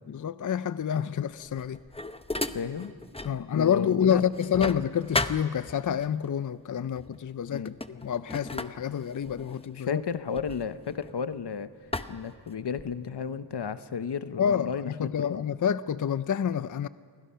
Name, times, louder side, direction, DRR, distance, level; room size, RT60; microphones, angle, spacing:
voice 1, 0.1-1.8 3.2-10.0 14.4-14.7 15.0-16.9, left 8 dB, 50° left, 0.5 m, -28 dB
sound 1, 1.4-3.4 3.8-6.1 6.9-7.2 7.5-11.4 11.9-13.1, left 2 dB, 15° left, 0.8 m, -36 dB
voice 2, 2.5-2.9 3.5-4.2 7.5-7.8 9.8-11.7 12.1-15.4, left 6 dB, 80° left, 0.9 m, -33 dB
27.5 x 24.0 x 5.6 m
wide cardioid pair, 95°, 41 cm